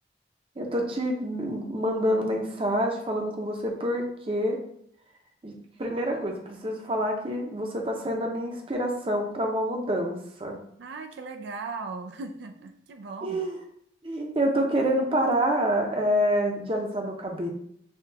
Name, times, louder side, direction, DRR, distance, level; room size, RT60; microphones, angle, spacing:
voice 1, 0.6-4.6 5.4-5.5 5.8-10.6 13.2-13.6 14.0-17.5, equal, 30° right, 1 dB, 0.6 m, -27 dB
voice 2, 10.8-13.4, right 4 dB, 85° right, 6 dB, 0.4 m, -38 dB
5.5 x 2.3 x 2.8 m, 0.69 s
head